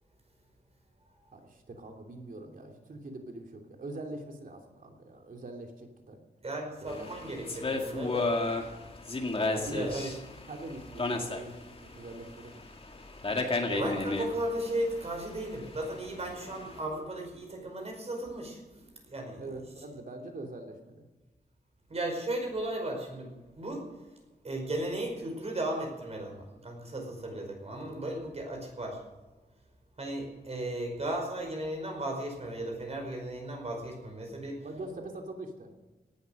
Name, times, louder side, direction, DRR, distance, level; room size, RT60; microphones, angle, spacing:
voice 1, 1.3-6.2 6.8-7.1 9.7-10.2 10.5-12.6 19.4-21.0 34.6-35.7, right 2 dB, 55° right, 3 dB, 3.0 m, -43 dB
voice 2, 6.4-8.3 9.5-10.1 13.7-19.4 21.9-23.9 24.4-29.0 30.0-34.6, right 1 dB, 40° right, 2 dB, 5.0 m, -35 dB
sound 1, 6.9-16.8, left 2 dB, 35° left, 2.1 m, -34 dB
18.0 x 12.0 x 6.6 m, 1.2 s
wide cardioid pair, 165°, 17 cm